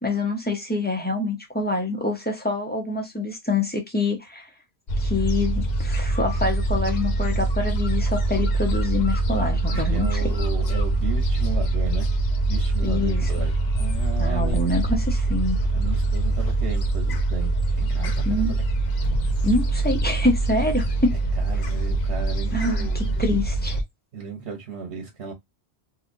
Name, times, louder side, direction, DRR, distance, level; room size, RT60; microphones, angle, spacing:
voice 1, 0.0-4.5 5.0-10.3 12.8-13.3 14.2-15.6 18.2-18.5 19.4-21.1 22.5-23.8, left 2 dB, 10° left, 0.9 m, -26 dB
Gull seagull, 4.9-23.8, right 2 dB, 50° left, 0.6 m, -24 dB
voice 2, 9.7-12.1 12.5-14.7 15.7-17.5 17.8-18.6 21.4-23.4 24.1-25.3, right 5 dB, 80° right, 1.2 m, -35 dB
3.3 x 2.7 x 2.4 m
omnidirectional pair, 1.1 m